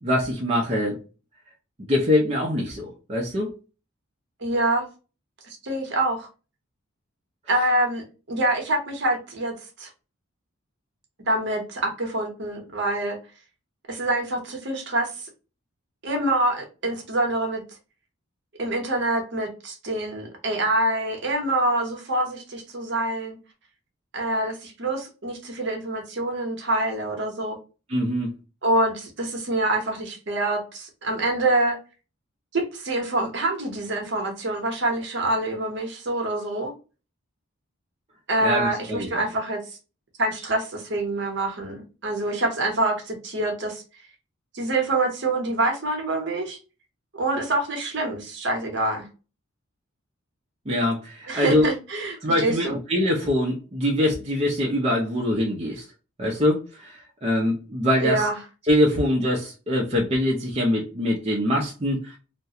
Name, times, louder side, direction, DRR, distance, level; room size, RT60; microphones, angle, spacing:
voice 1, 0.0-1.0 1.9-3.5 27.9-28.3 38.4-39.3 50.7-51.7 52.2-55.8 56.2-58.3 58.7-62.2, left 1 dB, 30° right, -2 dB, 0.5 m, -23 dB
voice 2, 4.4-4.9 5.6-6.3 7.5-9.9 11.3-13.2 13.9-15.1 16.0-17.6 18.6-23.4 24.1-27.6 28.6-31.8 32.5-36.7 38.3-39.6 40.2-43.8 44.5-46.6 47.1-49.1 51.3-52.8 58.0-58.4, right 2 dB, 55° right, 2 dB, 0.8 m, -26 dB
2.3 x 2.1 x 2.7 m, 0.32 s
head